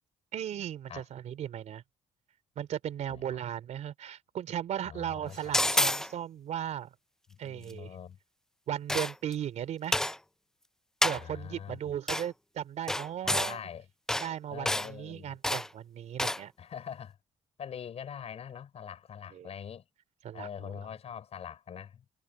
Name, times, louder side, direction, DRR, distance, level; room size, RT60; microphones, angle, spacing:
voice 1, 0.3-1.8 2.5-6.9 7.4-8.0 8.7-10.0 11.0-13.6 14.2-16.5 19.3-19.5 20.2-20.9, right 10 dB, 65° right, 3.2 m, -37 dB
voice 2, 4.8-5.9 7.3-8.2 11.1-11.8 13.2-13.9 14.5-15.3 16.6-17.2 17.6-19.8 20.3-22.0, left 8 dB, 55° left, 5.8 m, -43 dB
sound 1, 5.5-6.1 8.9-9.3 9.9-10.2 11.0-11.2 12.1-12.3 12.9-13.6 14.1-14.3 14.7-14.9 15.4-15.7 16.2-16.4, left 1 dB, 5° left, 0.3 m, -28 dB
cardioid pair, 90°, 13 cm